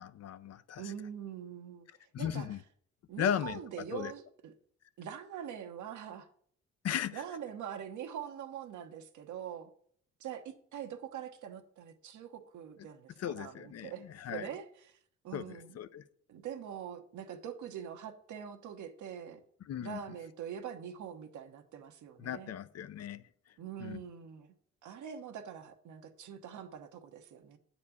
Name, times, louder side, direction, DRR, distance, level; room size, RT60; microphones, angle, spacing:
voice 1, 0.0-0.9 2.1-2.6 3.2-3.6 3.9-4.1 6.8-7.2 13.2-14.5 15.3-16.0 19.7-20.0 22.2-23.2 23.8-24.0, left 9 dB, 55° left, 14 dB, 0.6 m, -36 dB
voice 2, 0.8-2.5 3.1-4.5 5.0-6.3 7.1-9.7 10.2-15.0 15.2-15.8 16.3-19.4 19.8-22.5 23.6-24.5 24.8-27.6, right 9 dB, 75° right, 6 dB, 1.2 m, -44 dB
8.5 x 4.3 x 7.0 m, 0.62 s
cardioid pair, 90°, 30 cm